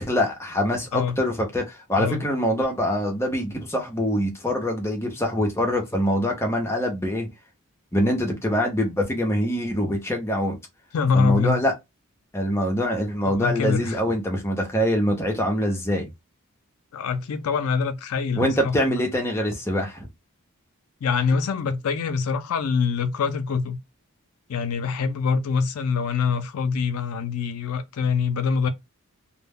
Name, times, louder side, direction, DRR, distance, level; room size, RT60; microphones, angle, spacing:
voice 1, 0.0-7.3 7.9-10.6 11.1-11.7 12.3-16.1 18.4-20.1, equal, 10° left, 0.6 m, -24 dB
voice 2, 10.9-11.6 13.2-14.0 16.9-18.8 21.0-23.8 24.5-28.7, left 5 dB, 80° left, 0.4 m, -24 dB
2.1 x 2.0 x 3.4 m
head